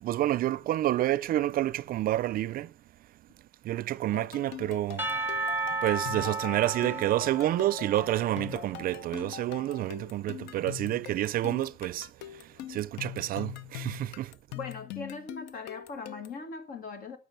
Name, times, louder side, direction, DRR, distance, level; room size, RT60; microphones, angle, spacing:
voice 1, 0.0-2.7 3.6-5.1 5.8-14.3, right 14 dB, 60° right, 0.4 m, -29 dB
sound 1, 4.1-16.4, left 13 dB, 90° left, 0.6 m, -43 dB
Percussion / Church bell, 5.0-9.1, right 3 dB, 10° right, 1.1 m, -34 dB
sound 2, 9.2-10.9 11.3-11.4 11.7-11.9 12.2-12.3, equal, 25° left, 4.8 m, -62 dB
voice 2, 14.5-17.2, left 4 dB, 60° left, 2.0 m, -40 dB
12.5 x 4.9 x 6.6 m
cardioid pair, 110°, 17 cm